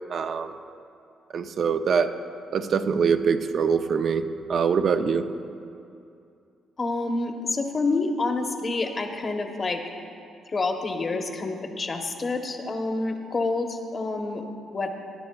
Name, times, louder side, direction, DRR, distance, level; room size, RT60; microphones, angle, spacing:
voice 1, 0.1-0.5 1.3-2.1 2.5-5.2, right 6 dB, 55° right, 9 dB, 0.5 m, -24 dB
voice 2, 6.8-9.8 10.5-14.9, left 3 dB, 35° left, 4 dB, 1.0 m, -28 dB
18.5 x 10.5 x 2.3 m, 2.5 s
cardioid pair, 90°, 0 cm